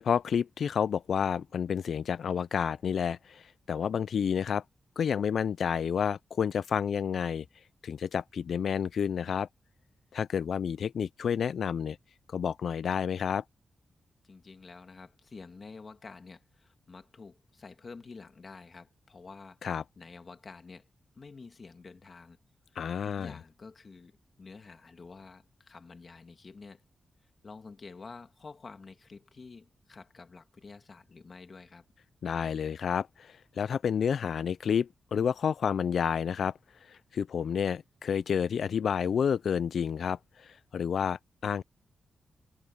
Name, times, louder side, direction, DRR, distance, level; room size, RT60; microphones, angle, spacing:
voice 1, 0.0-4.6 5.0-7.5 7.8-9.5 10.1-12.0 12.3-13.4 19.6-19.8 22.8-23.3 32.2-41.6, left 7 dB, 60° left, 0.3 m, -30 dB
voice 2, 14.2-19.6 19.9-20.9 21.1-22.4 23.0-26.8 27.4-31.8, left 4 dB, 35° left, 1.6 m, -49 dB
wide cardioid pair, 180°, 0 cm